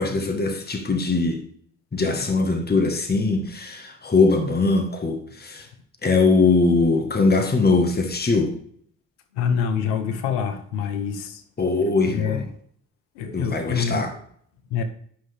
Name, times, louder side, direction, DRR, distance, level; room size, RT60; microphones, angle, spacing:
voice 1, 0.0-1.4 1.9-5.7 6.0-8.6 11.6-12.5 13.3-14.1, left 3 dB, 30° left, 5 dB, 1.4 m, -21 dB
voice 2, 9.3-11.4 12.1-12.4 13.2-14.0 14.7-14.8, left 7 dB, 85° left, 9 dB, 0.9 m, -25 dB
10.0 x 5.5 x 3.4 m, 0.62 s
hypercardioid pair, 45°, 34 cm